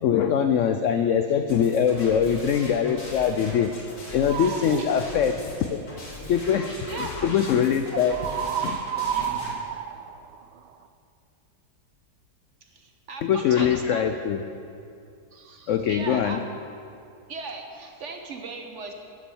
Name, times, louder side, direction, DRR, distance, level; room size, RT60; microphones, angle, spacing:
voice 1, 0.0-5.8 6.3-8.2 8.6-8.8 13.2-14.4 15.7-16.4, left 8 dB, 80° left, 8 dB, 0.6 m, -23 dB
sound 1, 1.5-9.5, left 1 dB, 60° left, 2.7 m, -40 dB
sound 2, 4.2-4.8 8.1-10.9, right 9 dB, 85° right, 1.3 m, -30 dB
voice 2, 6.9-7.3 7.9-8.2 9.0-9.3 12.6-14.0 15.3-16.4 17.3-18.9, right 4 dB, 50° right, 4 dB, 1.0 m, -37 dB
11.5 x 7.3 x 7.0 m, 2.5 s
omnidirectional pair, 1.8 m